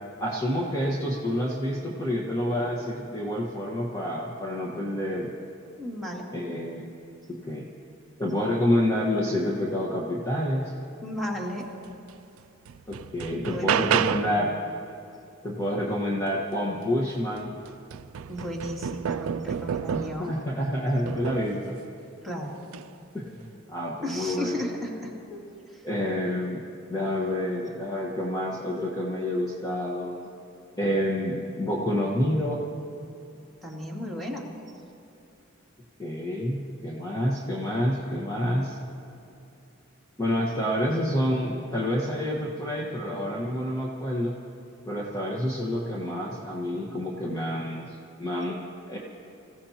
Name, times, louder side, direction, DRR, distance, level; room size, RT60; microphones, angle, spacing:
voice 1, 0.2-5.3 6.3-6.9 7.3-7.7 8.2-10.7 12.9-14.5 15.4-17.5 19.9-21.8 23.1-24.7 25.8-26.6 26.9-30.3 30.8-32.6 36.0-38.8 40.2-44.3 44.8-48.6 48.9-49.0, left 1 dB, 15° left, -4 dB, 1.4 m, -28 dB
voice 2, 5.8-6.3 11.0-11.7 13.4-14.5 18.3-20.4 22.2-22.6 24.0-25.4 25.7-25.8 33.6-34.5, equal, ahead, -4 dB, 2.4 m, -35 dB
sound 1, 12.1-12.2 12.7-14.5 16.8-16.9 17.4-20.3 21.1-21.6 22.6-22.9, right 8 dB, 75° right, 0.4 m, -30 dB
26.0 x 16.0 x 2.9 m, 2.7 s
head